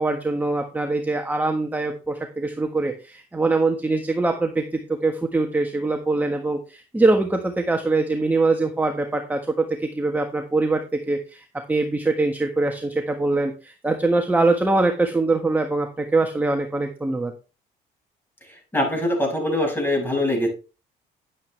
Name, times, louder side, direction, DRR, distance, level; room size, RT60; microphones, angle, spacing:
voice 1, 0.0-10.8 11.1-17.3, right 3 dB, 10° right, 4 dB, 1.4 m, -23 dB
voice 2, 18.7-20.5, left 1 dB, 10° left, 1 dB, 6.1 m, -22 dB
10.5 x 9.5 x 3.4 m, 0.32 s
cardioid pair, 110°, 17 cm